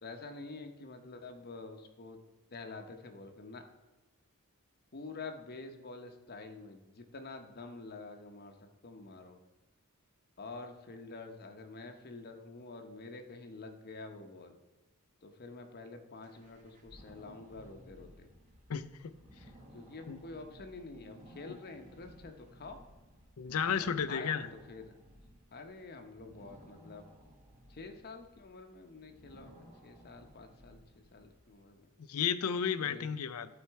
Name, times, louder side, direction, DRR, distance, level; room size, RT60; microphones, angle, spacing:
voice 1, 0.0-2.2 2.5-3.7 4.9-8.6 8.8-9.4 10.4-14.6 15.2-18.3 19.7-22.8 24.0-25.0 25.5-27.1 27.7-31.9 32.8-33.1, left 3 dB, 45° left, 0.8 m, -48 dB
sound 1, 16.2-31.6, equal, 35° right, 1.9 m, -58 dB
voice 2, 23.4-24.5 32.1-33.5, left 7 dB, 85° left, 0.5 m, -32 dB
12.0 x 4.4 x 4.6 m
head